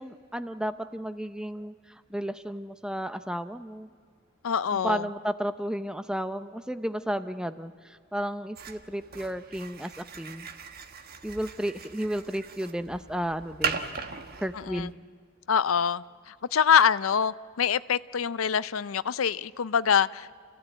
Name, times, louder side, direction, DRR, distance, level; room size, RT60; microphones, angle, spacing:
voice 1, 0.0-1.7 2.1-3.9 4.7-10.5 11.2-13.8 14.4-14.9, equal, 5° right, 0.6 m, -33 dB
voice 2, 4.4-5.1 14.5-14.9 15.5-20.4, left 7 dB, 85° left, 0.5 m, -25 dB
sound 1, 8.6-14.9, right 6 dB, 50° right, 1.3 m, -38 dB
29.5 x 15.5 x 9.1 m
head